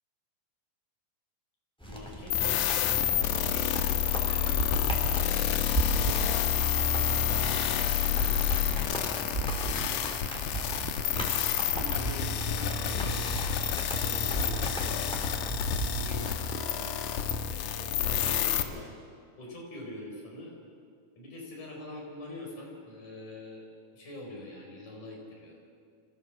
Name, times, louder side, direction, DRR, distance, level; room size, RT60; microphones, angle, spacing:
sound 1, 1.8-16.3, equal, ahead, 2.8 m, -41 dB
voice 1, 1.9-2.8 3.1-6.2 7.0-9.8 11.1-13.2 13.9-15.7 15.9-16.9 17.5-18.9 19.4-20.5 21.2-23.7 23.9-25.5, left 1 dB, 65° left, -1 dB, 5.7 m, -44 dB
sound 2, 2.3-18.6, left 9 dB, 85° left, 2.6 m, -29 dB
sound 3, 4.6-5.0 5.7-6.1 7.0-7.4 8.2-8.6 9.3-9.7 10.5-10.9 11.7-12.1 13.0-13.4 14.3-14.7 15.5-15.9, right 4 dB, 20° right, 2.1 m, -31 dB
24.5 x 15.5 x 7.2 m, 2.4 s
omnidirectional pair, 3.7 m